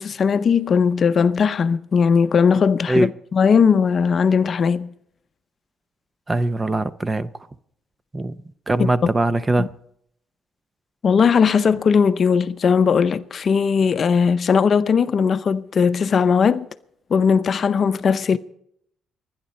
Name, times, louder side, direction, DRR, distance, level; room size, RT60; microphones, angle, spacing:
voice 1, 0.0-4.9 8.8-8.9 9.6-9.7 11.0-16.7 17.1-18.4, left 6 dB, 50° left, 0.6 m, -18 dB
voice 2, 6.3-7.3 8.1-8.4 8.7-9.7, right 2 dB, 25° right, 0.7 m, -21 dB
29.0 x 10.5 x 4.2 m
cardioid pair, 90°, 0 cm